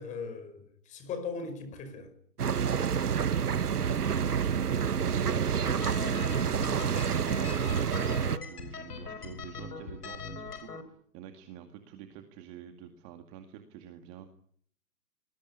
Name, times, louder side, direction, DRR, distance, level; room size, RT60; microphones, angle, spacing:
voice 1, 0.0-2.1, left 5 dB, 15° left, 5.3 m, -39 dB
sound 1, 2.4-8.4, right 7 dB, 70° right, 1.5 m, -28 dB
voice 2, 3.0-6.0 6.8-14.3, right 9 dB, 20° right, 2.1 m, -47 dB
sound 2, 5.6-10.8, left 4 dB, 70° left, 6.6 m, -41 dB
25.0 x 21.0 x 9.9 m
hypercardioid pair, 150°, 48 cm